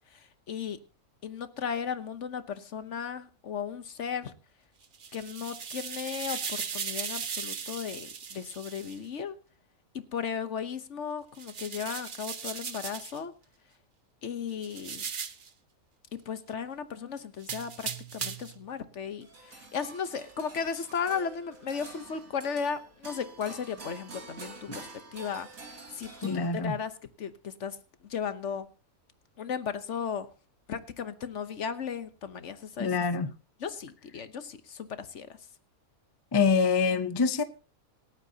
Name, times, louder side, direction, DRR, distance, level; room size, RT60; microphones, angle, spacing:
voice 1, 0.1-0.8 1.2-4.3 5.1-9.4 9.9-13.3 14.2-15.0 16.1-26.9 27.2-27.8 28.0-28.7 29.4-30.3 30.7-32.9 33.6-35.4, left 7 dB, 60° left, 1.3 m, -35 dB
sound 1, 4.8-9.0 11.4-13.2 14.6-15.5 17.4-18.6, right 6 dB, 40° right, 0.9 m, -37 dB
sound 2, 19.2-26.9, right 3 dB, 70° right, 3.1 m, -48 dB
voice 2, 26.2-26.7 32.8-33.3 36.3-37.4, left 5 dB, 25° left, 0.5 m, -25 dB
26.0 x 8.9 x 2.8 m
omnidirectional pair, 1.5 m